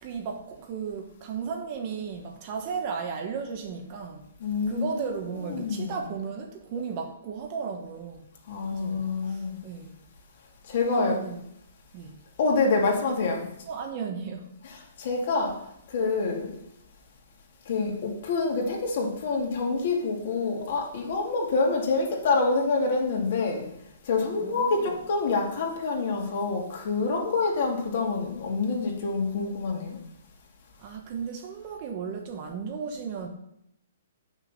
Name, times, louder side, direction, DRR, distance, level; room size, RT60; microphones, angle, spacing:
voice 1, 0.0-4.2 4.7-8.2 8.7-9.9 10.8-11.4 11.9-12.1 13.7-14.5 24.4-25.0 30.8-33.3, right 6 dB, 35° right, 3 dB, 1.4 m, -35 dB
voice 2, 4.4-6.1 8.5-9.6 10.7-11.2 12.4-13.4 14.6-15.6 15.9-16.5 17.7-23.6 24.1-30.0, left 3 dB, 50° left, 0 dB, 2.5 m, -27 dB
8.9 x 6.3 x 5.6 m, 0.77 s
hypercardioid pair, 165°, 0 cm